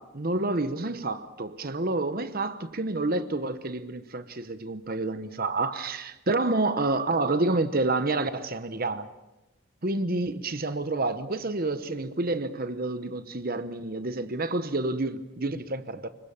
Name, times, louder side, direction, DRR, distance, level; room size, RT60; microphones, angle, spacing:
voice 1, 0.0-9.1 9.8-16.1, right 2 dB, 40° right, 0.9 m, -29 dB
25.5 x 22.5 x 7.2 m
head